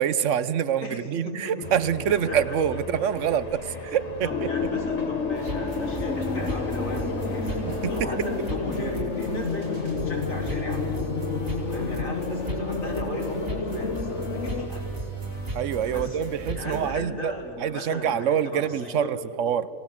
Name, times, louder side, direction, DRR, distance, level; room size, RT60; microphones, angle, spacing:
voice 1, 0.0-4.5 7.8-8.1 15.5-17.3 17.6-19.7, right 8 dB, 70° right, 16 dB, 1.1 m, -26 dB
voice 2, 0.8-1.1 1.4-1.7 2.1-2.6 3.6-11.2 11.7-14.8 15.9-16.2 16.5-19.1, left 1 dB, 85° left, -1 dB, 4.5 m, -36 dB
sound 1, 1.6-10.1, left 1 dB, 30° left, 1.3 m, -38 dB
sound 2, 4.3-14.7, left 5 dB, 65° left, 1.6 m, -30 dB
sound 3, 5.3-16.9, right 2 dB, 90° right, 5.5 m, -35 dB
28.5 x 18.0 x 7.3 m, 2.5 s
omnidirectional pair, 1.3 m